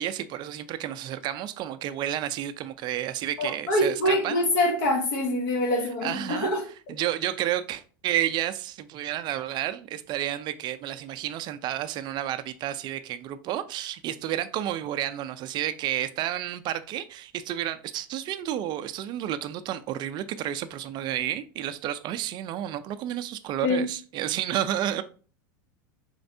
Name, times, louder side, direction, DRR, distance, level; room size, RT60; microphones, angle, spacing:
voice 1, 0.0-4.4 6.0-6.5 6.9-25.0, right 12 dB, 40° right, 0.4 m, -31 dB
voice 2, 3.4-6.6 23.6-23.8, left 1 dB, 65° left, 1.2 m, -25 dB
4.3 x 3.1 x 2.6 m
supercardioid pair, 125°, 11 cm